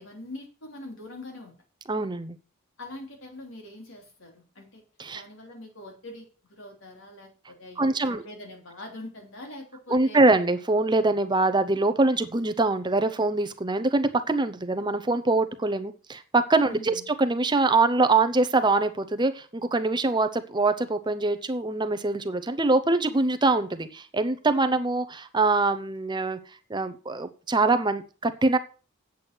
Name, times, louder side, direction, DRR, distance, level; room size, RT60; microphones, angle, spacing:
voice 1, 0.0-1.5 2.8-4.8 5.1-10.2 16.7-17.1, left 1 dB, 70° left, 3.4 m, -43 dB
voice 2, 1.9-2.4 5.0-5.2 7.8-8.2 9.9-26.4 26.7-28.6, right 3 dB, 20° right, 0.7 m, -24 dB
8.2 x 8.2 x 6.1 m
head